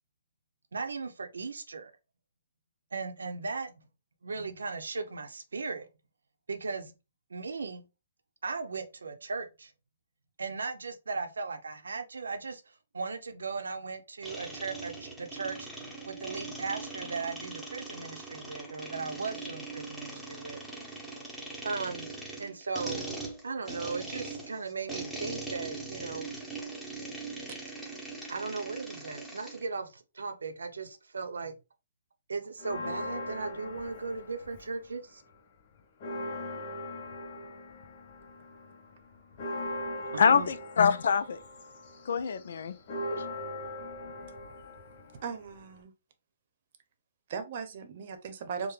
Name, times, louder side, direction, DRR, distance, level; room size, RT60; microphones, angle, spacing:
voice 1, 0.7-1.9 2.9-3.7 4.2-5.9 6.5-6.9 7.3-7.9 8.4-9.7 10.4-15.7 16.1-20.6 20.9-21.0 21.6-23.1 23.4-26.3 28.3-31.6 32.3-35.2 40.1-40.5, right 4 dB, 85° right, 0.7 m, -37 dB
sound 1, 14.2-29.6, right 3 dB, ahead, 1.0 m, -41 dB
Church bell, 32.6-35.0 35.3-35.4 35.8-45.8, left 1 dB, 50° left, 0.8 m, -40 dB
voice 2, 40.2-41.4 42.1-42.8 43.1-43.2, left 6 dB, 65° left, 0.4 m, -25 dB
voice 3, 45.2-45.9 47.3-48.7, right 6 dB, 50° right, 0.8 m, -38 dB
4.8 x 2.1 x 3.2 m
hypercardioid pair, 140°, 0 cm